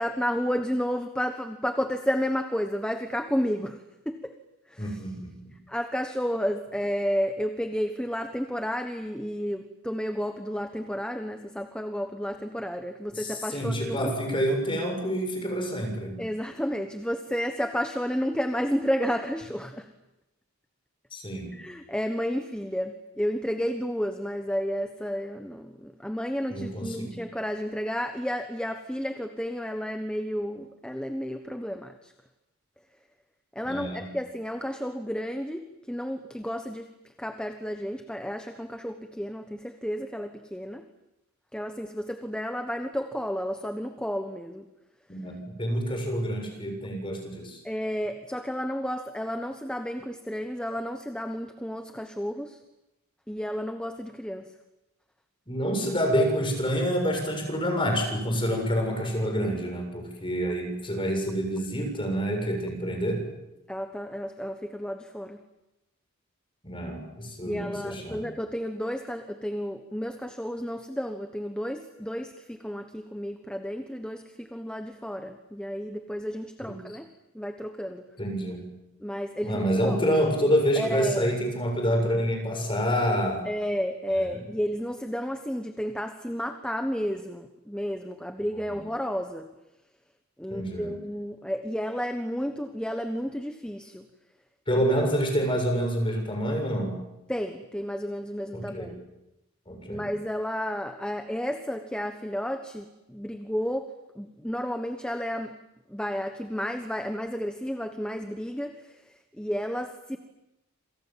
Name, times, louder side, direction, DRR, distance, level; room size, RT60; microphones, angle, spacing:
voice 1, 0.0-4.3 4.7-5.0 5.7-14.1 16.2-19.9 21.5-32.1 33.5-36.9 37.2-40.9 41.5-44.7 47.6-52.6 53.3-54.5 63.7-65.4 67.5-77.1 77.3-78.0 79.0-80.0 80.7-81.3 83.4-89.5 90.4-94.1 94.8-94.9 97.3-98.9 99.9-105.6 105.9-109.0 109.4-110.2, equal, 5° left, 6 dB, 1.2 m, -32 dB
voice 2, 4.8-5.4 13.1-16.2 21.1-21.5 26.5-27.2 33.7-34.1 45.1-47.6 55.5-63.2 66.6-68.2 76.7-76.8 78.2-78.7 79.4-83.4 84.2-84.4 88.7-88.8 90.5-90.9 94.7-97.0 98.5-98.9 99.7-100.1, equal, 25° left, 3 dB, 7.1 m, -27 dB
27.5 x 26.5 x 7.6 m, 0.93 s
head